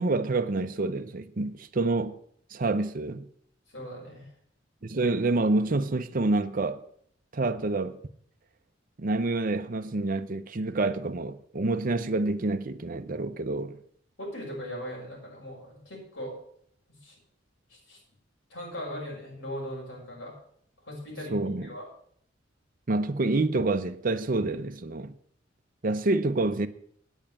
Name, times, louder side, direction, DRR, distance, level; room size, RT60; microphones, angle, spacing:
voice 1, 0.0-2.1 2.5-3.3 4.8-6.8 7.3-8.0 9.0-13.8 21.3-21.7 22.9-25.1 25.8-26.7, right 2 dB, 45° right, 0.7 m, -27 dB
voice 2, 3.7-4.3 14.2-16.3 17.0-17.2 17.7-18.0 18.5-20.3 20.9-21.8, equal, 85° left, 6.0 m, -39 dB
9.0 x 8.9 x 7.3 m
head